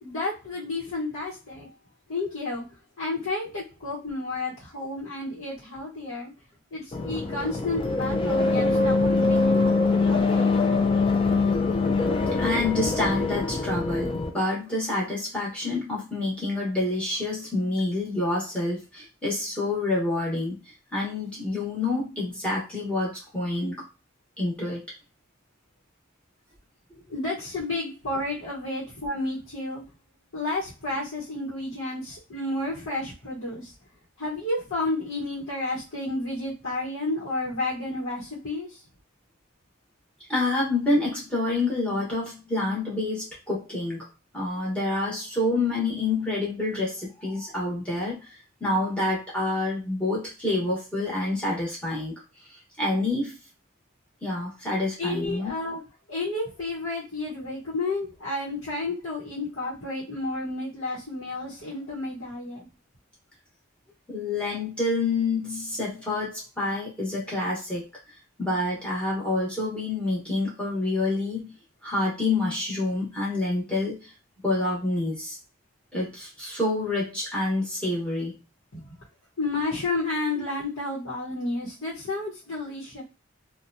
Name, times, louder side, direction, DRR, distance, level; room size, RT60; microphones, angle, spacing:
voice 1, 0.0-1.7 2.1-2.6 3.0-6.3 6.7-9.7 10.0-10.8 27.1-29.8 30.3-33.7 34.2-38.8 55.0-55.8 56.1-62.6 78.7-78.9 79.4-83.0, left 2 dB, 70° left, -7 dB, 1.0 m, -31 dB
sound 1, 6.9-14.3, left 3 dB, 25° left, 0.4 m, -23 dB
voice 2, 12.4-23.7 24.4-24.8 40.3-52.2 52.5-53.4 54.2-55.5 64.1-67.8 68.4-71.5 71.8-74.1 74.4-75.4 75.9-78.4 80.4-80.5, left 2 dB, 5° left, -6 dB, 1.0 m, -28 dB
2.9 x 2.2 x 2.5 m, 0.29 s
head